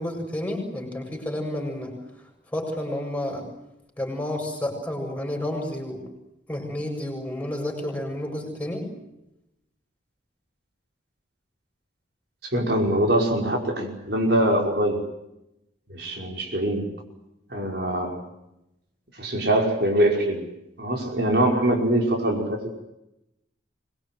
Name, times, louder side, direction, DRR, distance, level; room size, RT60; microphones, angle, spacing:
voice 1, 0.0-1.9 2.5-3.5 4.0-6.0 6.5-8.9, left 1 dB, 10° left, 2 dB, 7.4 m, -30 dB
voice 2, 12.4-15.0 15.9-16.9 17.5-18.2 19.2-20.5 20.8-22.7, right 1 dB, 55° right, 1 dB, 5.4 m, -23 dB
25.5 x 22.0 x 9.2 m, 0.88 s
head